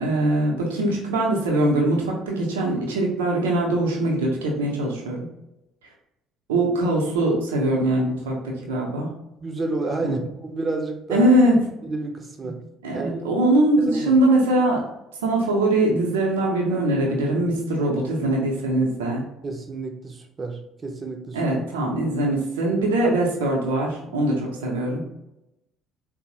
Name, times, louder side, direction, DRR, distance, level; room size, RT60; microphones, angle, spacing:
voice 1, 0.0-5.3 6.5-9.1 10.0-10.2 11.1-11.7 12.8-14.8 15.2-19.2 21.3-25.0, right 1 dB, 75° right, -1 dB, 0.6 m, -22 dB
voice 2, 9.4-11.3 11.8-12.6 12.9-13.3 13.8-14.2 19.4-21.4, right 3 dB, 30° right, 4 dB, 0.5 m, -30 dB
3.7 x 2.0 x 2.8 m, 0.88 s
figure-of-eight pair, 55°, 0 cm